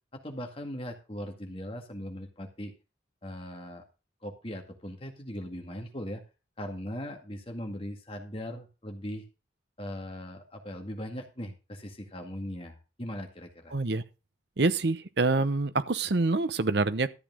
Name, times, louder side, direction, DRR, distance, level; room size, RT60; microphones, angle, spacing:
voice 1, 0.1-2.7 3.2-3.8 4.2-6.2 6.6-9.2 9.8-13.8, equal, 30° left, 2.1 m, -39 dB
voice 2, 13.7-14.0 14.6-17.1, right 3 dB, 60° right, 0.8 m, -26 dB
13.5 x 8.5 x 3.7 m
head